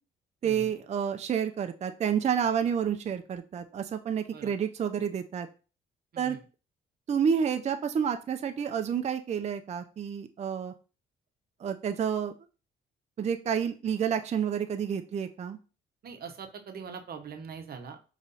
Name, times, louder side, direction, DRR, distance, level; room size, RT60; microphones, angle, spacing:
voice 1, 0.4-5.5 6.2-6.4 7.1-10.7 11.6-12.3 13.2-15.6, right 7 dB, 35° right, 7 dB, 0.4 m, -29 dB
voice 2, 16.0-18.0, right 6 dB, 50° right, 6 dB, 0.8 m, -42 dB
5.2 x 3.1 x 2.7 m, 0.34 s
cardioid pair, 90°, 20 cm